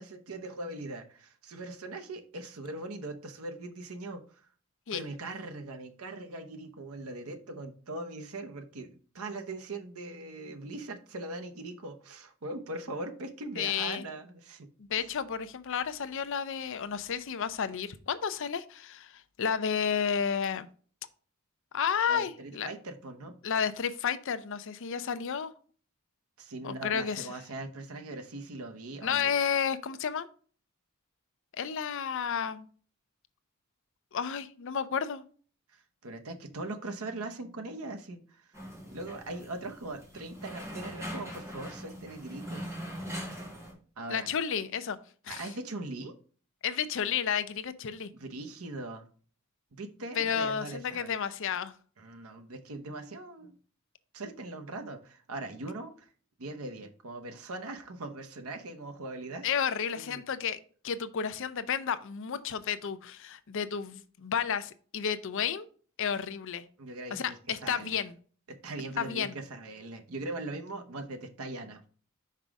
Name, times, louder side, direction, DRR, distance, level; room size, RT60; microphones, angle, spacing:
voice 1, 0.0-4.4 4.9-14.7 22.1-23.4 26.4-29.3 35.7-38.6 38.9-42.7 44.0-44.3 45.3-46.1 48.1-49.1 49.7-51.1 52.0-53.6 54.1-56.1 56.4-59.5 59.9-60.2 66.8-68.0 68.5-71.8, right 2 dB, 85° right, 5 dB, 0.8 m, -40 dB
voice 2, 13.6-14.1 14.8-20.7 21.7-22.7 23.4-25.5 26.6-27.3 29.0-30.3 31.6-32.7 34.1-35.2 44.1-45.0 45.2-45.5 46.6-48.1 50.2-51.7 59.4-60.6 60.8-65.7 66.0-66.6 67.1-68.1 69.0-69.3, left 7 dB, 65° left, 13 dB, 0.5 m, -31 dB
sound 1, 38.5-43.7, equal, 15° right, 2.1 m, -41 dB
5.5 x 5.1 x 3.5 m, 0.42 s
head